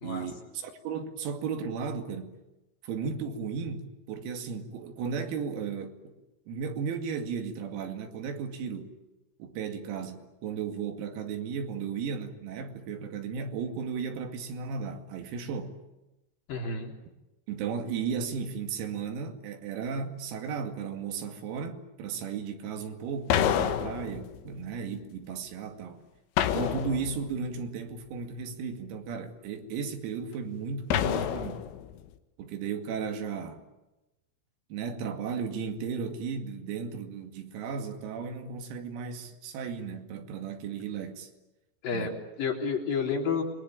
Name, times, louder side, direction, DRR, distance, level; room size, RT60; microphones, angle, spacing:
voice 1, 0.0-2.3 2.8-6.1 6.5-8.9 9.4-15.8 17.5-26.0 26.4-31.6 32.4-33.6 34.7-41.3 41.9-42.2, right 6 dB, 90° right, 5.1 m, -35 dB
voice 2, 16.5-16.9 41.8-42.1 42.4-43.4, left 5 dB, 45° left, 4.9 m, -30 dB
sound 1, 23.3-24.5 26.4-27.4 30.9-31.9, left 10 dB, 75° left, 3.9 m, -28 dB
28.5 x 22.5 x 8.9 m
omnidirectional pair, 6.0 m